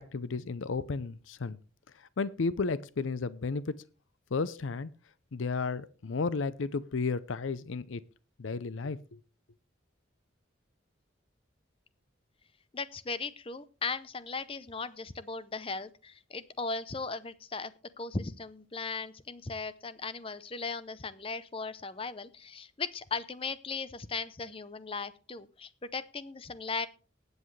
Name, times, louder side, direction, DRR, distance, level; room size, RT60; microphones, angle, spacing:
voice 1, 0.0-1.6 2.2-3.8 4.3-4.9 5.3-8.0 8.4-9.2, left 4 dB, 75° left, 0.6 m, -33 dB
voice 2, 12.7-26.9, left 4 dB, 25° left, 0.6 m, -37 dB
19.5 x 8.0 x 3.2 m
head